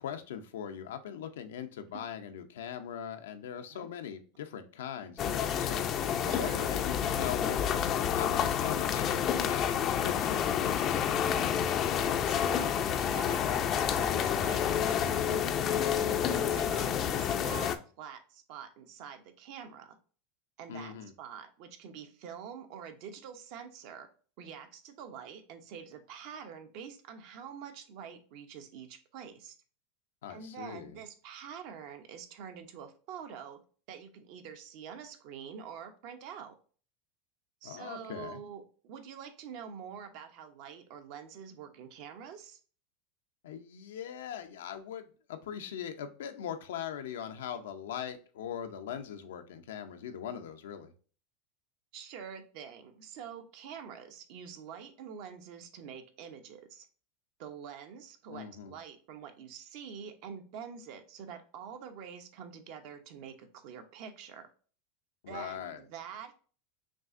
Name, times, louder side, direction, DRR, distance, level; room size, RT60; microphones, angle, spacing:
voice 1, 0.0-5.9 6.2-7.6 8.1-11.2 20.7-21.1 30.2-31.0 37.6-38.4 43.4-50.9 58.3-58.7 65.2-65.8, left 9 dB, 85° left, 8 dB, 0.6 m, -41 dB
sound 1, 5.2-17.8, left 8 dB, 40° left, 0.4 m, -29 dB
voice 2, 6.4-6.7 12.3-20.0 20.6-24.1 24.4-29.5 30.3-33.6 33.9-36.5 37.6-42.6 51.9-56.9 57.4-64.5 65.3-66.3, right 7 dB, 60° right, 7 dB, 0.8 m, -46 dB
6.0 x 2.4 x 2.5 m, 0.40 s
supercardioid pair, 130°, 0 cm